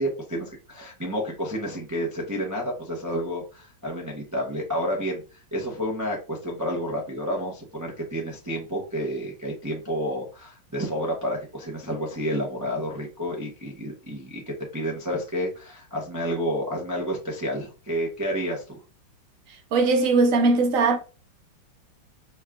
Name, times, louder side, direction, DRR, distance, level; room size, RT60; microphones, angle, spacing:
voice 1, 0.0-18.8, equal, 20° right, 0.5 m, -30 dB
voice 2, 19.7-21.0, right 3 dB, 55° right, 1.0 m, -19 dB
5.2 x 2.4 x 3.5 m
omnidirectional pair, 2.1 m